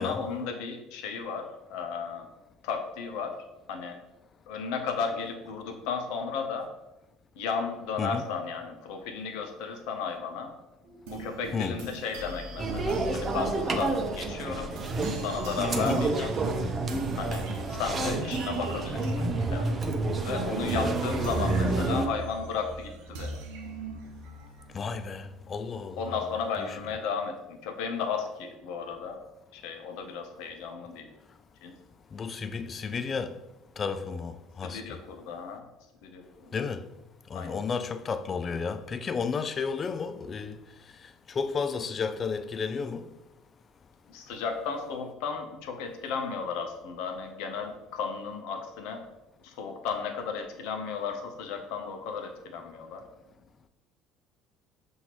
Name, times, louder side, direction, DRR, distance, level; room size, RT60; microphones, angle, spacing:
voice 1, 0.0-2.3 2.6-3.3 3.7-4.0 4.5-6.7 7.3-10.5 11.1-14.7 15.1-16.3 17.2-19.7 20.2-23.4 26.0-29.2 29.5-31.1 31.6-31.8 34.6-35.7 36.0-36.6 37.3-37.6 44.1-49.0 49.4-53.0, left 5 dB, 75° left, 0.7 m, -34 dB
sound 1, 10.8-25.6, right 3 dB, 85° right, 0.7 m, -40 dB
sound 2, 12.6-22.1, right 2 dB, 35° right, 0.6 m, -29 dB
voice 2, 24.7-26.1 26.6-26.7 32.1-33.3 33.8-35.0 36.5-36.9 37.3-40.6 41.3-43.1, left 5 dB, 35° left, 0.3 m, -32 dB
5.8 x 2.7 x 3.0 m
supercardioid pair, 85°, 0 cm